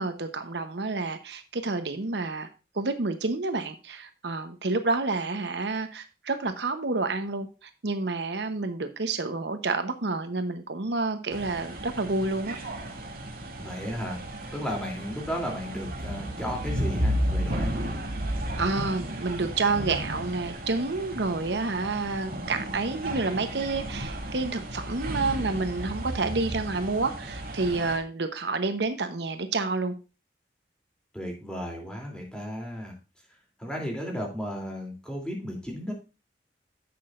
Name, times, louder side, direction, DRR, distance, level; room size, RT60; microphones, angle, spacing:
voice 1, 0.0-2.5 2.7-12.6 18.6-29.9, right 3 dB, 75° right, 8 dB, 1.0 m, -29 dB
sound 1, 11.3-28.0, equal, 55° right, 2.4 m, -33 dB
voice 2, 13.5-14.2 14.5-17.9 31.1-32.9 33.6-35.9, equal, 5° left, 0 dB, 3.0 m, -34 dB
11.0 x 7.8 x 2.5 m, 0.30 s
head